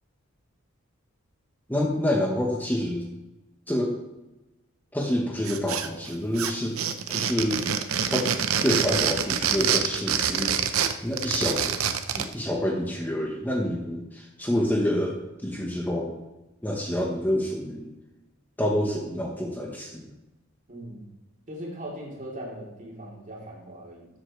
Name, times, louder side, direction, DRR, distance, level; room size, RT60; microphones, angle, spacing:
voice 1, 1.7-3.1 3.7-4.0 4.9-6.8 7.1-7.6 8.1-8.3 8.6-10.6 11.0-11.7 12.1-16.2 16.6-17.9 18.6-20.1, left 1 dB, 10° left, -1 dB, 1.1 m, -27 dB
sound 1, 5.5-6.1 6.4-12.3, right 8 dB, 80° right, 0.8 m, -26 dB
voice 2, 20.7-21.0 21.5-24.1, right 1 dB, 40° right, -3 dB, 3.2 m, -39 dB
13.5 x 7.9 x 3.2 m, 1.0 s
head